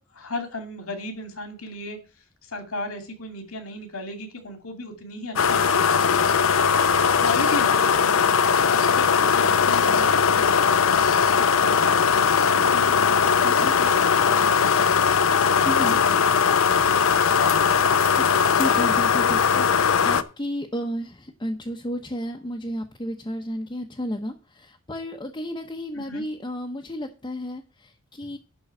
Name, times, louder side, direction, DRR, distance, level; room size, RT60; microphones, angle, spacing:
voice 1, 0.1-2.0 2.4-6.3 7.2-8.4 8.7-14.9 15.3-16.1 16.6-17.0 17.3-18.2 26.1-26.3, left 2 dB, 85° left, 6 dB, 2.4 m, -36 dB
sound 1, 5.4-20.2, left 6 dB, 70° left, 0.6 m, -19 dB
voice 2, 13.4-13.8 15.6-16.0 18.2-18.3 18.5-28.4, equal, 20° left, 1 dB, 0.9 m, -32 dB
11.5 x 3.9 x 7.5 m, 0.34 s
head